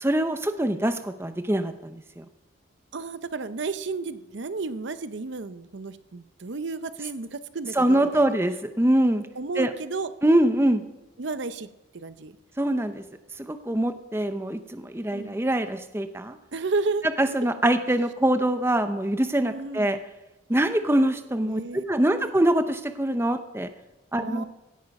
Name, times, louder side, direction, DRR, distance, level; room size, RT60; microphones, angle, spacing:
voice 1, 0.0-1.7 2.2-2.3 7.8-9.3 9.6-9.7 10.2-10.8 12.6-13.0 13.5-16.4 17.2-20.0 20.5-21.6 21.9-23.7 24.1-24.4, right 1 dB, 10° right, 9 dB, 0.6 m, -23 dB
voice 2, 2.9-8.3 9.3-10.1 11.2-11.7 11.9-12.4 15.1-15.4 16.5-17.1 19.5-19.9 21.4-21.8 22.1-22.3 24.2-24.4, right 3 dB, 60° right, 13 dB, 0.6 m, -32 dB
16.5 x 8.8 x 5.3 m, 1.0 s
head